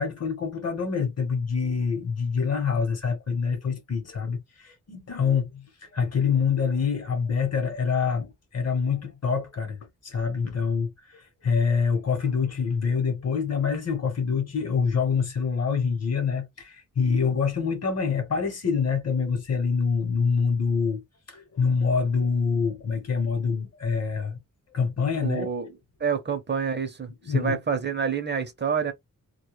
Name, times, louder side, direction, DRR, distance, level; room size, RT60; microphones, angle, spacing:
voice 1, 0.0-21.0 21.3-24.4 24.7-25.5 27.2-27.6, left 5 dB, 50° left, 0.9 m, -26 dB
voice 2, 25.2-25.7 26.0-28.9, right 6 dB, 35° right, 0.6 m, -28 dB
2.2 x 2.1 x 3.0 m
wide cardioid pair, 145°, 33 cm